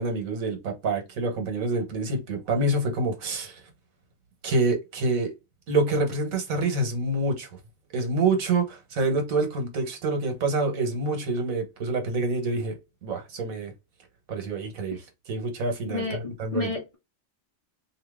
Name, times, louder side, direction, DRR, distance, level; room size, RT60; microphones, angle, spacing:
voice 1, 0.0-3.6 4.4-5.3 5.7-7.5 7.9-12.8 13.0-13.7 14.3-15.0 15.3-16.7, right 2 dB, 90° right, 1.4 m, -27 dB
voice 2, 15.9-17.0, left 4 dB, 40° left, 0.5 m, -31 dB
2.8 x 2.8 x 3.4 m
omnidirectional pair, 1.4 m